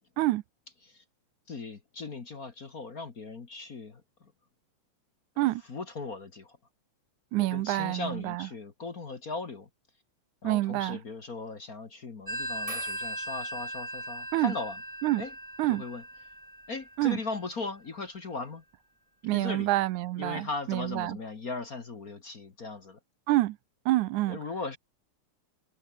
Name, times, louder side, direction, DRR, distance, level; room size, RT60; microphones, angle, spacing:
voice 1, 1.5-4.3 5.7-6.6 7.4-9.7 10.4-14.8 15.2-15.3 15.7-16.0 16.7-18.6 19.3-19.7 20.2-23.0 24.3-24.8, left 3 dB, 35° left, 1.7 m, -38 dB
voice 2, 7.3-8.5 10.4-11.0 14.3-14.5 15.0-15.2 15.6-15.8 17.0-17.2 19.2-21.2 23.3-23.6 23.9-24.4, right 17 dB, 90° right, 2.2 m, -27 dB
Telephone, 12.3-17.6, right 1 dB, 10° right, 6.2 m, -38 dB
omnidirectional pair, 3.4 m